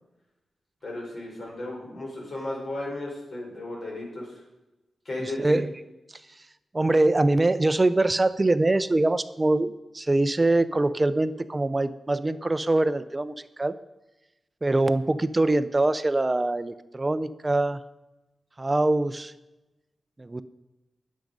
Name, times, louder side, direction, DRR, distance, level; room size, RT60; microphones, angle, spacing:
voice 1, 0.8-4.4 5.0-5.6, left 1 dB, 45° left, -2 dB, 5.0 m, -35 dB
voice 2, 5.2-5.7 6.7-13.8 14.6-17.8 18.6-19.3 20.2-20.4, right 2 dB, 20° right, 13 dB, 0.5 m, -23 dB
20.0 x 7.4 x 5.3 m, 1.0 s
wide cardioid pair, 150°, 0 cm